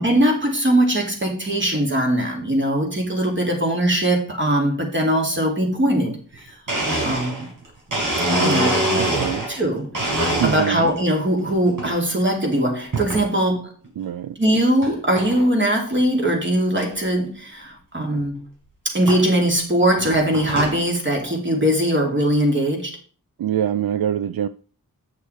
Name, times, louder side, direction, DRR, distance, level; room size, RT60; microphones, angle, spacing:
voice 1, 0.0-6.6 7.0-7.4 8.4-9.0 9.5-13.7 14.4-18.4 18.8-23.0, right 1 dB, 35° right, 2.7 m, -21 dB
Domestic sounds home sounds, 6.3-6.4 6.7-9.6 9.9-11.0 11.4-11.9 12.9-13.3 13.8-13.9 14.8-14.9 15.2-15.5 15.9-16.0 16.2-16.3 16.8-16.9 18.2-18.3 19.1-19.2 19.9-20.8, right 1 dB, 60° right, 4.1 m, -24 dB
voice 2, 8.9-9.5 10.4-10.8 14.0-14.4 23.4-24.5, right 10 dB, 80° right, 0.5 m, -24 dB
8.6 x 6.4 x 4.4 m
wide cardioid pair, 90°, 35 cm